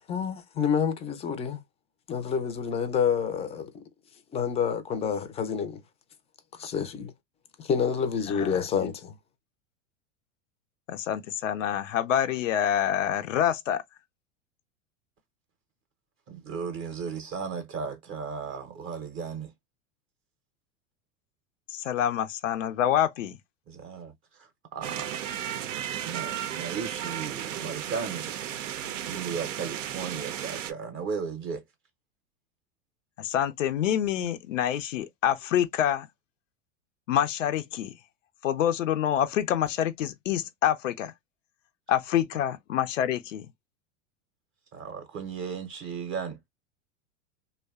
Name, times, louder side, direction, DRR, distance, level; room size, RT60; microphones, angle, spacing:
voice 1, 0.1-1.6 2.1-3.8 4.3-5.8 6.5-7.1 7.6-9.2, left 7 dB, 20° left, 0.3 m, -28 dB
voice 2, 10.9-13.8 21.7-23.4 33.2-36.1 37.1-37.9 38.4-41.1 41.9-43.5, left 10 dB, 90° left, 0.6 m, -27 dB
voice 3, 16.3-19.5 23.7-25.2 25.8-28.3 29.0-31.6 44.7-46.4, right 6 dB, 35° right, 0.6 m, -36 dB
sound 1, 24.8-30.7, right 10 dB, 90° right, 0.5 m, -34 dB
2.6 x 2.1 x 2.2 m
hypercardioid pair, 110°, 37 cm